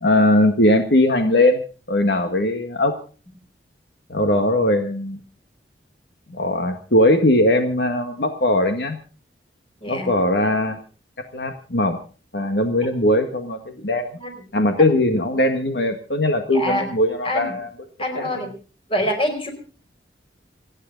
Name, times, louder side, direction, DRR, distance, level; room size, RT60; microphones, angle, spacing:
voice 1, 0.0-2.9 4.1-5.2 6.3-9.0 9.9-10.8 11.3-12.0 12.3-14.2 14.5-17.7 18.2-18.3, left 1 dB, 70° left, 5 dB, 1.8 m, -20 dB
voice 2, 9.8-10.1 14.2-14.3 14.8-14.9 16.5-16.9 17.2-17.6 18.0-18.5 18.9-19.5, equal, 30° left, 5 dB, 4.7 m, -25 dB
28.5 x 10.0 x 4.0 m, 0.38 s
head